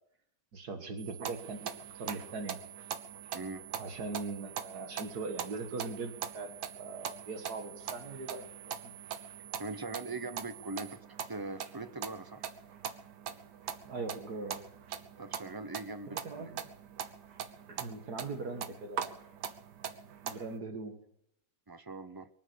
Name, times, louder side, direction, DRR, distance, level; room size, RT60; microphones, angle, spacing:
voice 1, 0.5-1.7 2.0-2.6 3.8-8.5 8.8-8.9 13.9-14.6 16.1-16.6 17.7-19.2 20.2-21.0, right 3 dB, 70° right, 6 dB, 2.3 m, -40 dB
sound 1, 1.0-11.0, right 10 dB, 45° right, 1.0 m, -51 dB
sound 2, 1.2-20.6, right 8 dB, 90° right, 1.7 m, -43 dB
voice 2, 3.3-3.6 9.6-12.4 15.2-16.5 21.7-22.3, right 3 dB, 30° right, 11 dB, 0.4 m, -41 dB
23.5 x 8.8 x 6.8 m, 0.73 s
omnidirectional pair, 1.8 m